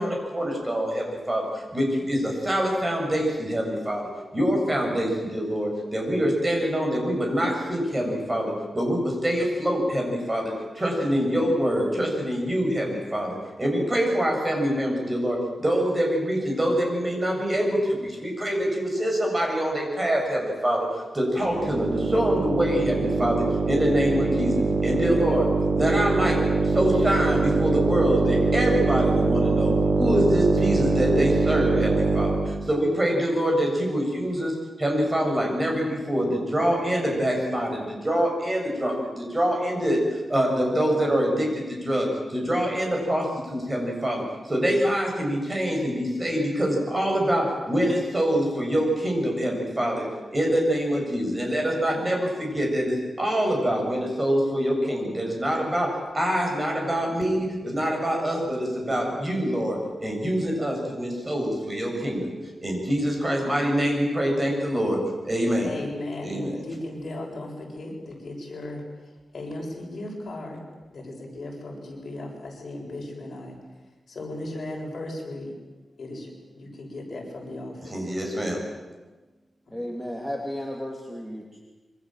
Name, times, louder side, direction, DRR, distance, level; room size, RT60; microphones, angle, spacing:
voice 1, 0.0-50.1 50.3-62.3 62.6-65.0 65.2-65.7 66.2-66.6 77.8-78.6, equal, 20° right, 0 dB, 7.6 m, -25 dB
sound 1, 21.4-32.6, right 3 dB, 60° right, 3.2 m, -23 dB
voice 2, 65.6-68.8 69.3-70.6 70.9-73.6 74.1-75.6 76.0-78.0 79.7-79.8, left 1 dB, 55° left, 0 dB, 7.3 m, -36 dB
voice 3, 79.7-81.6, equal, 5° right, 0 dB, 2.8 m, -33 dB
27.0 x 24.5 x 7.8 m, 1.2 s
wide cardioid pair, 150°, 0 cm